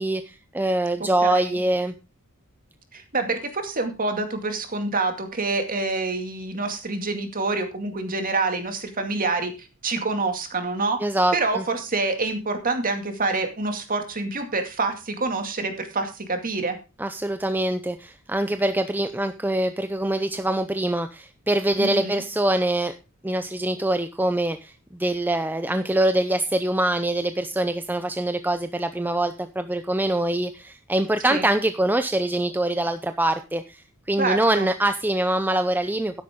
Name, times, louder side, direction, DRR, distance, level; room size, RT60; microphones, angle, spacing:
voice 1, 0.0-1.9 11.0-11.6 17.0-22.9 23.2-36.2, right 1 dB, 10° right, 9 dB, 0.6 m, -24 dB
voice 2, 1.2-1.6 2.9-11.0 11.3-16.8 21.8-22.2 31.3-31.5 34.2-34.7, right 3 dB, 40° right, 6 dB, 2.3 m, -27 dB
12.0 x 10.5 x 3.7 m, 0.30 s
head